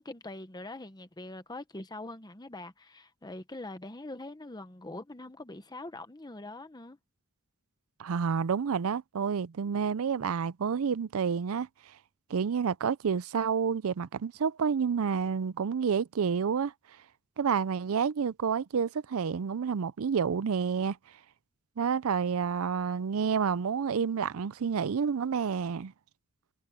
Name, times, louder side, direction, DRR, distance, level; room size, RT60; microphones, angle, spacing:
voice 1, 0.0-7.0, left 2 dB, 20° left, 1.1 m, -43 dB
voice 2, 8.0-11.7 12.3-16.7 17.4-21.0 21.8-25.9, right 6 dB, 70° right, 0.5 m, -29 dB
head